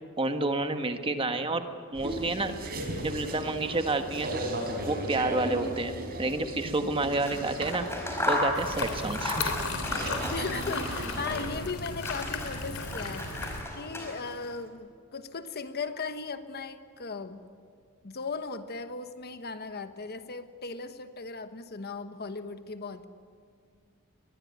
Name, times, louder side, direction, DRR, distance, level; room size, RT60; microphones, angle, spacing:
voice 1, 0.2-1.6 1.9-2.7 3.0-4.4 4.9-7.9 8.3-9.5, right 2 dB, 25° right, 7 dB, 1.4 m, -29 dB
sound 1, 1.9-11.4, right 1 dB, 45° right, 4.2 m, -37 dB
Scissors, 7.1-11.6 11.9-14.5, left 1 dB, 10° left, 5.0 m, -35 dB
sound 2, 8.5-13.6, left 3 dB, 70° left, 3.5 m, -35 dB
voice 2, 10.3-13.3 13.7-17.4 18.0-23.1, left 4 dB, 50° left, 10 dB, 1.2 m, -37 dB
24.0 x 21.0 x 9.4 m, 2.1 s
head